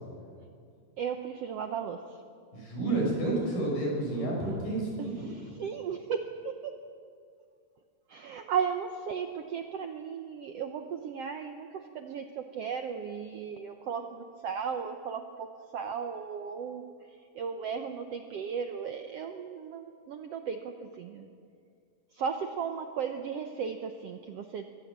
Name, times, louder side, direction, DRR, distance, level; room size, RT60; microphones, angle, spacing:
voice 1, 1.0-2.2 5.0-6.7 8.1-15.5 15.7-17.0 17.3-21.3 22.1-24.6, right 6 dB, 75° right, 6 dB, 1.4 m, -35 dB
voice 2, 2.5-5.3, right 2 dB, 80° left, -2 dB, 8.3 m, -30 dB
23.0 x 18.5 x 7.4 m, 2.3 s
omnidirectional pair, 3.9 m